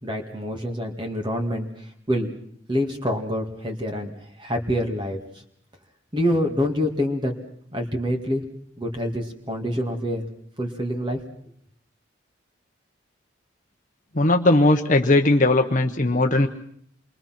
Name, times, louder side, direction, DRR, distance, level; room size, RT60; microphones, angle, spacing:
voice 1, 0.0-2.3 2.7-5.4 6.1-7.3 7.7-8.4 8.8-10.3 10.6-11.2, equal, 25° right, 2 dB, 2.2 m, -26 dB
voice 2, 14.1-16.5, left 2 dB, 40° left, 5 dB, 1.0 m, -18 dB
28.0 x 22.0 x 6.0 m, 0.67 s
head